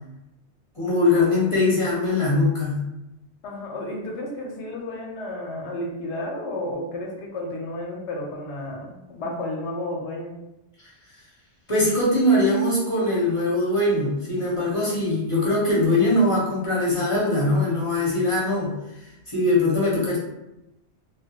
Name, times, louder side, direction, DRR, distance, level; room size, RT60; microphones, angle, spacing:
voice 1, 0.8-2.8 10.8-10.9 11.7-18.7 19.3-20.2, left 2 dB, 35° left, -6 dB, 0.6 m, -21 dB
voice 2, 3.4-10.4, left 1 dB, 85° left, 0 dB, 0.9 m, -32 dB
2.2 x 2.0 x 2.8 m, 0.92 s
omnidirectional pair, 1.1 m